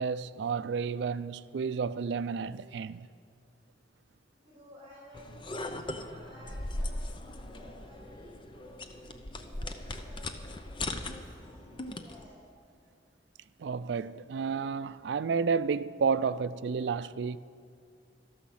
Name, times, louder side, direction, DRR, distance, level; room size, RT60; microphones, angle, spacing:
voice 1, 0.0-3.1 13.6-17.4, right 5 dB, 80° right, 0.4 m, -31 dB
voice 2, 4.4-7.1 7.5-12.4, equal, 30° right, 3.9 m, -54 dB
sound 1, 5.1-12.2, left 1 dB, 30° left, 0.6 m, -39 dB
13.5 x 13.0 x 5.7 m
head